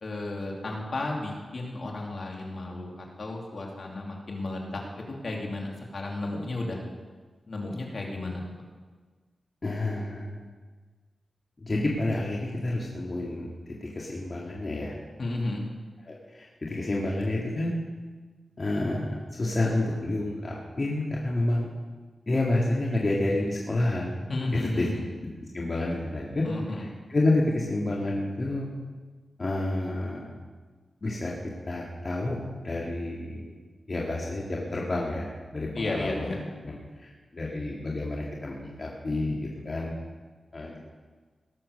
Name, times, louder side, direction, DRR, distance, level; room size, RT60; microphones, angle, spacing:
voice 1, 0.0-6.8 7.5-8.4 15.2-15.6 24.3-25.0 26.4-26.8 35.7-36.4, left 2 dB, 60° left, -1 dB, 2.8 m, -33 dB
voice 2, 9.6-10.4 11.6-13.5 13.8-14.9 16.1-17.7 18.6-21.7 22.3-24.2 24.5-24.9 25.5-26.4 26.7-28.7 29.4-30.2 31.0-31.3 31.7-33.6 33.9-35.3 35.5-36.3 36.6-36.7 37.0-39.9 40.5-40.8, left 2 dB, 40° left, -3 dB, 2.0 m, -29 dB
18.0 x 7.5 x 6.6 m, 1.4 s
wide cardioid pair, 80°, 0 cm